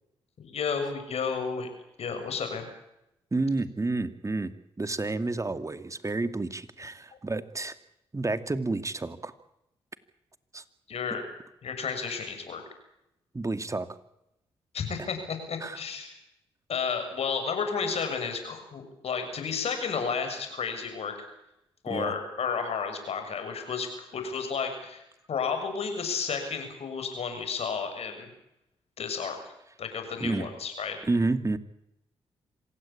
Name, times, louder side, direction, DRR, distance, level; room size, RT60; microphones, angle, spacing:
voice 1, 0.4-1.7 2.0-2.7 10.9-11.2 11.6-12.6 14.7-16.2 16.7-21.1 21.8-23.9 24.1-28.3 29.0-29.4 29.8-31.0, left 5 dB, 65° left, 6 dB, 6.8 m, -32 dB
voice 2, 3.3-7.7 8.1-9.3 10.5-10.6 13.3-13.9 15.6-15.8 21.9-22.1 30.2-30.5 31.1-31.6, right 3 dB, 30° right, 11 dB, 2.4 m, -30 dB
26.5 x 16.5 x 8.7 m, 0.84 s
supercardioid pair, 45°, 11 cm